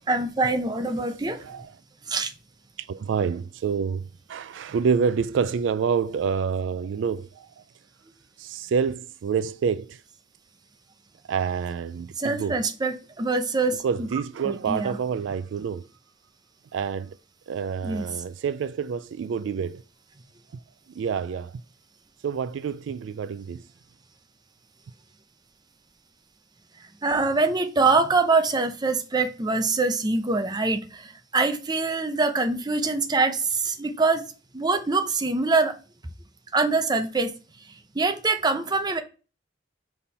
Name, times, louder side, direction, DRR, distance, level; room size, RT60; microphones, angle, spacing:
voice 1, 0.1-1.4 2.1-2.3 12.2-14.1 14.4-15.0 17.8-18.1 27.0-34.2 34.5-35.7 36.5-37.3 37.9-39.0, right 3 dB, 20° right, 0.6 m, -24 dB
voice 2, 1.4-1.7 2.8-7.5 8.4-10.0 11.3-12.6 13.8-15.8 16.7-17.2 17.5-19.8 20.9-21.5 22.2-23.7, right 6 dB, 75° right, 0.3 m, -27 dB
5.3 x 4.3 x 4.2 m
head